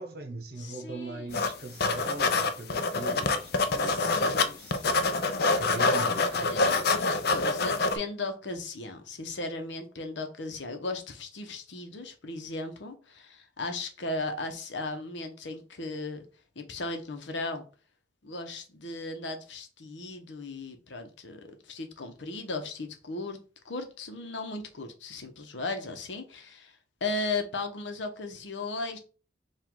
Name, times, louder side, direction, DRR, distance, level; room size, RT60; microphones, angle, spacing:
voice 1, 0.0-4.9 5.6-7.5, right 2 dB, 60° right, 0.9 m, -40 dB
voice 2, 0.6-1.3 3.8-4.5 5.8-6.0 6.3-16.2 16.6-17.6 18.2-23.4 23.6-29.0, left 3 dB, 80° left, 0.9 m, -36 dB
sound 1, 1.3-1.5 1.8-4.4 4.7-8.0, left 3 dB, 60° left, 0.5 m, -26 dB
4.8 x 2.5 x 3.7 m
head